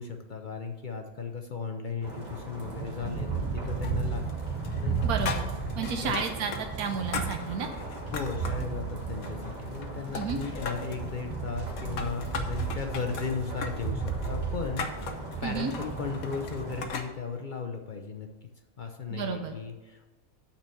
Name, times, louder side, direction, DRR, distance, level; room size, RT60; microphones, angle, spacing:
voice 1, 0.0-5.1 6.0-6.2 8.1-18.3 18.8-20.1, left 5 dB, 50° left, 4 dB, 0.6 m, -36 dB
sound 1, 2.0-16.9, right 4 dB, 30° right, 1.6 m, -34 dB
sound 2, 3.8-4.4 4.6-6.6 6.9-8.7 9.1-9.9 10.2-11.0 11.6-17.1, left 5 dB, 70° left, 1.3 m, -38 dB
voice 2, 5.0-5.4 5.8-6.5 6.8-7.7 10.1-10.4 15.4-15.7 19.1-19.5, right 6 dB, 85° right, 5 dB, 1.2 m, -31 dB
8.9 x 4.4 x 6.9 m, 1.1 s
omnidirectional pair, 1.5 m